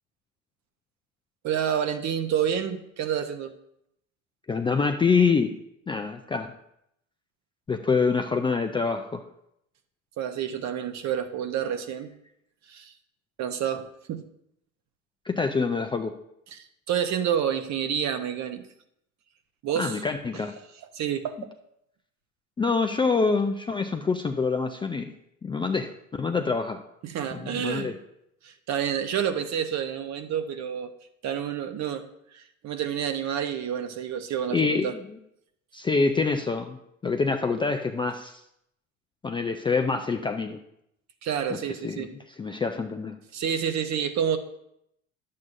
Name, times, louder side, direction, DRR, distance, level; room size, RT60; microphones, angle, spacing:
voice 1, 1.4-3.5 10.2-12.1 12.7-12.9 13.4-14.2 16.5-18.7 19.6-20.0 20.9-21.5 27.0-27.9 28.4-30.9 31.2-34.9 41.2-42.1 43.3-44.4, right 9 dB, 45° right, 8 dB, 0.9 m, -29 dB
voice 2, 4.5-5.5 5.9-6.5 7.7-9.2 15.3-16.2 19.8-20.5 22.6-25.1 25.4-26.8 27.3-28.0 34.5-35.2 35.7-38.4 39.2-40.6 41.5-41.6 41.8-43.2, left 4 dB, 15° left, 5 dB, 0.4 m, -26 dB
10.5 x 7.6 x 2.6 m, 0.78 s
hypercardioid pair, 70°, 40 cm